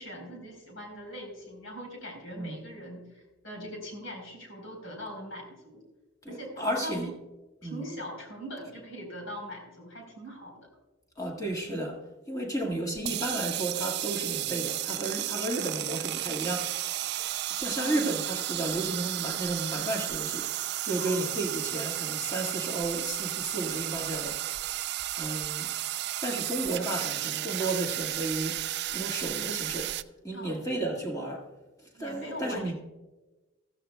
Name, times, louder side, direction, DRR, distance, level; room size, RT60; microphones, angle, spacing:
voice 1, 0.0-5.8 6.3-7.1 7.6-10.7 15.6-15.8 17.8-18.1 21.0-21.3 26.9-27.7 30.3-30.5 31.9-32.7, equal, 65° left, 4.2 m, -42 dB
voice 2, 6.2-7.1 7.6-7.8 11.2-12.0 12.3-16.7 17.6-20.5 20.8-24.4 25.1-25.7 26.2-28.6 28.9-29.9 30.2-31.4 32.0-32.7, right 1 dB, 15° left, 1.8 m, -33 dB
sound 1, 13.0-30.0, right 14 dB, 50° right, 0.3 m, -33 dB
15.5 x 14.0 x 2.3 m
head